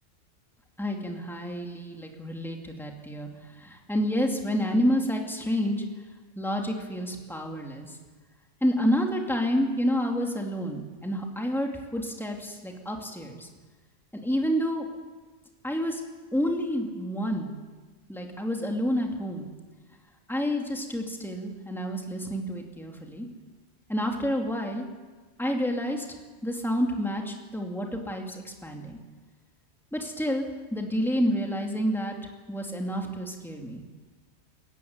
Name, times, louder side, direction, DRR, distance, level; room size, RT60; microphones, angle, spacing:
voice 1, 0.8-3.3 3.6-5.8 6.4-8.0 8.6-13.5 14.1-14.9 15.6-16.0 16.3-17.5 18.1-19.5 20.3-23.3 23.9-24.9 25.4-26.1 26.4-29.0 29.9-30.4 30.7-32.2 32.5-33.8, equal, ahead, 1 dB, 2.6 m, -29 dB
22.5 x 15.5 x 9.6 m, 1.3 s
omnidirectional pair, 1.2 m